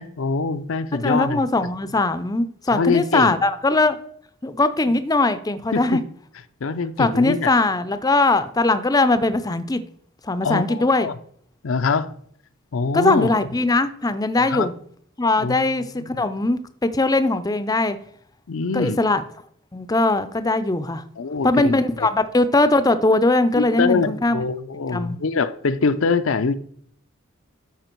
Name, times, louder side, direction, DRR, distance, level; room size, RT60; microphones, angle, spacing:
voice 1, 0.0-1.4 2.7-3.4 5.7-6.0 6.6-7.5 10.4-11.1 11.6-12.1 12.7-13.3 14.5-14.7 15.4-15.6 16.0-16.2 18.5-19.0 21.2-22.1 23.5-26.5, left 4 dB, 75° left, 0.5 m, -24 dB
voice 2, 0.9-4.0 4.4-6.0 7.0-9.8 10.2-11.1 12.9-14.7 15.2-18.0 18.7-19.2 19.7-21.0 21.4-24.4 24.9-25.2, left 2 dB, 20° left, 0.5 m, -20 dB
13.0 x 5.1 x 4.5 m
head